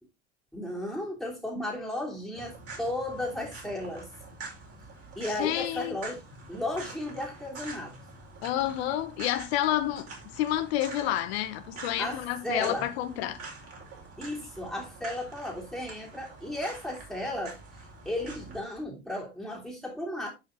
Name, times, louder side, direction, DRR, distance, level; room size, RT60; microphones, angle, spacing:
voice 1, 0.5-4.1 5.1-6.2 6.5-7.9 12.0-12.9 14.2-20.3, left 1 dB, ahead, 3.1 m, -35 dB
sound 1, 2.3-18.6, right 3 dB, 40° right, 5.2 m, -46 dB
voice 2, 5.3-5.9 8.4-13.4, left 13 dB, 60° left, 1.1 m, -29 dB
11.5 x 5.2 x 3.8 m
figure-of-eight pair, 75°, 36 cm